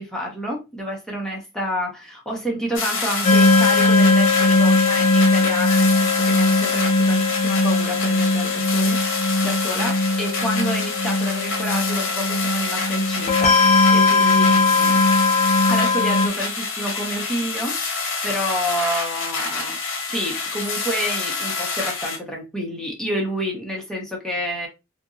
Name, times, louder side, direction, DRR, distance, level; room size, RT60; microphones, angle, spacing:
voice 1, 0.0-15.0 15.7-19.8 20.1-24.7, equal, 5° left, 0.8 m, -29 dB
sound 1, 2.7-22.2, left 4 dB, 60° left, 0.9 m, -27 dB
sound 2, 3.2-16.3, left 2 dB, 30° left, 0.5 m, -19 dB
2.8 x 2.6 x 2.4 m
head